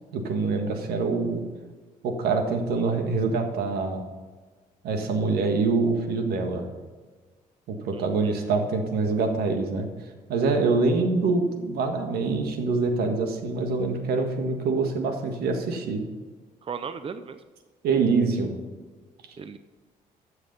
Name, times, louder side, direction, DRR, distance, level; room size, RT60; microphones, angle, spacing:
voice 1, 0.1-1.4 2.0-4.0 4.8-6.6 7.7-9.9 10.3-16.0 17.8-18.6, right 4 dB, 85° right, 5 dB, 1.6 m, -25 dB
voice 2, 7.9-8.3 16.6-17.4 19.4-19.6, right 6 dB, 35° right, 11 dB, 0.6 m, -37 dB
13.0 x 6.5 x 5.5 m, 1.4 s
supercardioid pair, 70°, 16 cm